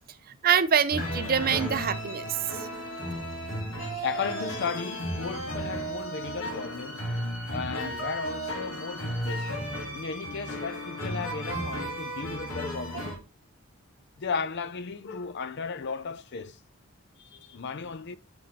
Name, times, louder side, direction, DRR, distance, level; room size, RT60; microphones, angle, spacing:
voice 1, 0.4-2.4 7.8-7.9, right 7 dB, 45° right, 0.6 m, -25 dB
sound 1, 0.9-13.2, equal, 70° left, 3.1 m, -34 dB
voice 2, 4.0-7.0 7.5-9.5 9.9-13.1 14.2-16.6 17.2-18.2, left 5 dB, 55° left, 0.5 m, -35 dB
8.7 x 4.2 x 3.8 m
head